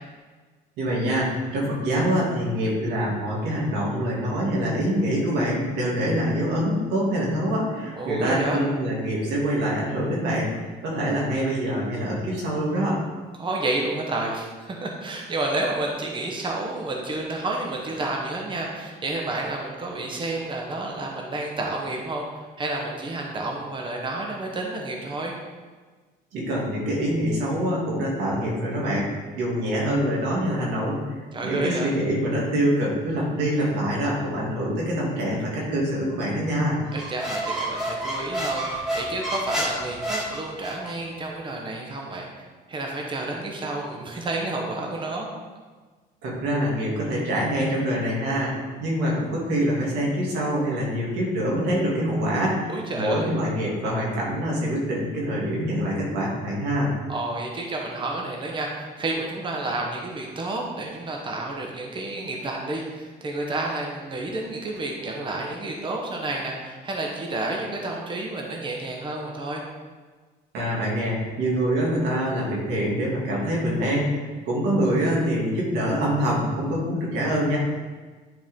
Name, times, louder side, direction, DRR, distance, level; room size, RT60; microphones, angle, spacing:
voice 1, 0.8-13.0 26.3-29.1 29.3-31.0 31.4-36.8 46.2-56.9 70.5-77.6, equal, 85° right, -4 dB, 2.5 m, -25 dB
voice 2, 8.0-8.6 13.4-25.3 31.3-31.9 36.9-45.3 52.7-53.3 57.1-69.6, right 2 dB, 30° right, 0 dB, 1.2 m, -30 dB
Squeak, 36.9-41.0, right 1 dB, 5° right, 1.8 m, -29 dB
10.5 x 4.7 x 3.7 m, 1.4 s
cardioid pair, 110°, 17 cm